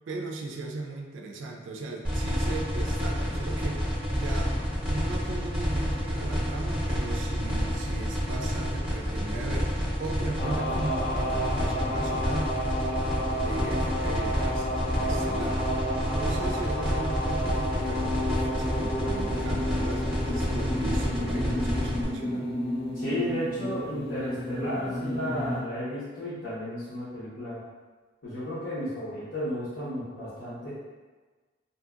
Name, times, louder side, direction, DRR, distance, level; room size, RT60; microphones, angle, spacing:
voice 1, 0.1-12.5 13.4-15.6 16.0-22.5, right 3 dB, 75° right, 2 dB, 0.3 m, -37 dB
sound 1, 2.0-22.0, equal, 5° right, 0.7 m, -29 dB
sound 2, 10.4-25.6, equal, 30° left, 0.5 m, -31 dB
voice 2, 22.9-27.6 28.2-30.7, equal, 75° left, -14 dB, 1.0 m, -33 dB
2.7 x 2.7 x 2.4 m, 1.3 s
head